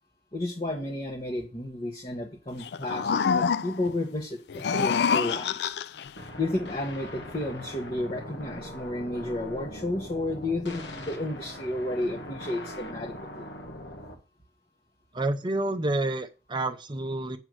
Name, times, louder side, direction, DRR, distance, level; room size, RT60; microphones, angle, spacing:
voice 1, 0.3-5.8 6.4-13.5, left 1 dB, 30° left, -1 dB, 1.3 m, -32 dB
sound 1, 2.6-3.9 4.5-6.1, left 6 dB, 70° left, 0.4 m, -26 dB
sound 2, 6.2-14.2, left 1 dB, 85° left, 1.6 m, -41 dB
voice 2, 15.1-17.4, right 2 dB, 25° right, 8 dB, 0.6 m, -29 dB
8.1 x 5.3 x 6.3 m, 0.33 s
head